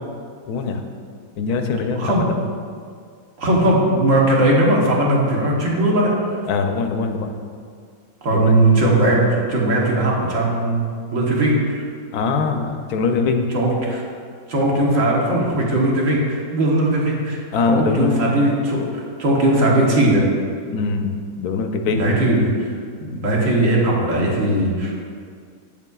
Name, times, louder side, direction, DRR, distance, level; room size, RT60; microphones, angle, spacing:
voice 1, 0.5-0.8 1.4-2.4 6.5-7.3 8.3-8.5 12.1-13.5 17.5-18.2 20.7-22.0, left 4 dB, 85° left, 6 dB, 1.1 m, -22 dB
voice 2, 1.9-2.3 3.4-6.1 8.2-10.8 11.1-11.8 13.5-14.0 14.5-17.4 17.6-20.2 21.9-22.5 23.0-24.9, right 1 dB, 60° right, -3 dB, 1.4 m, -18 dB
8.0 x 7.2 x 2.3 m, 2.1 s
omnidirectional pair, 1.6 m